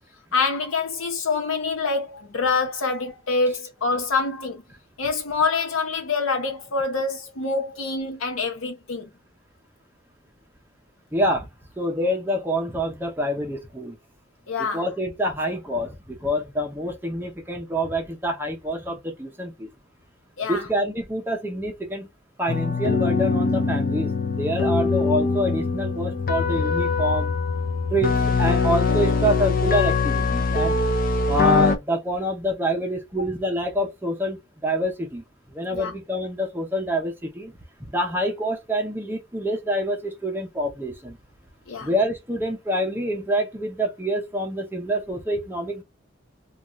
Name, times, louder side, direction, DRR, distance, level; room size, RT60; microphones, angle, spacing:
voice 1, 0.3-4.6 5.0-9.1 14.5-14.8 20.4-20.6 35.7-35.9 41.7-41.9, left 4 dB, 85° left, 0.9 m, -26 dB
voice 2, 11.1-11.5 11.8-14.0 14.6-19.7 20.5-22.1 22.4-27.3 27.9-30.8 31.3-35.2 35.5-37.5 37.8-41.2 41.8-45.8, equal, 10° right, 0.5 m, -26 dB
sound 1, 22.5-31.8, left 4 dB, 40° left, 0.5 m, -22 dB
2.6 x 2.3 x 3.0 m
head